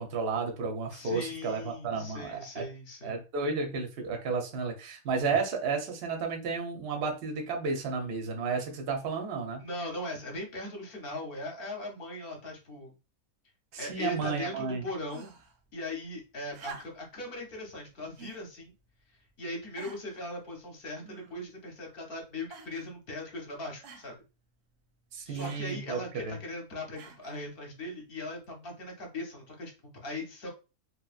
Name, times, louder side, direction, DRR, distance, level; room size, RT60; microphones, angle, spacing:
voice 1, 0.0-2.6 3.0-9.6 13.7-14.8 25.1-26.4, right 4 dB, 55° right, 3 dB, 0.7 m, -32 dB
voice 2, 0.9-3.2 5.3-5.4 9.6-12.9 13.8-15.3 15.7-18.7 19.4-24.2 25.3-30.5, left 1 dB, 45° left, 0 dB, 0.9 m, -39 dB
sound 1, 15.1-15.6 16.5-17.2 18.2-18.5 19.2-19.3 19.8-20.2 21.0-21.6 22.5-22.9 23.8-24.1 25.3-25.6 26.9-27.4 28.4-28.5, right 5 dB, 85° right, 1.1 m, -47 dB
2.8 x 2.2 x 2.4 m, 0.30 s
omnidirectional pair, 1.6 m